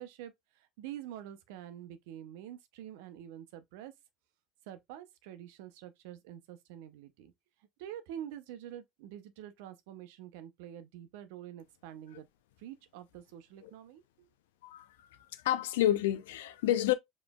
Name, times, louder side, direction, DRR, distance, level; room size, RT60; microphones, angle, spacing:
voice 1, 0.0-3.9 4.7-7.3 7.8-12.3 12.6-14.3, right 11 dB, 70° right, 0.7 m, -47 dB
voice 2, 15.4-16.9, left 13 dB, 80° left, 0.5 m, -29 dB
5.1 x 3.1 x 2.3 m
hypercardioid pair, 80°, 0 cm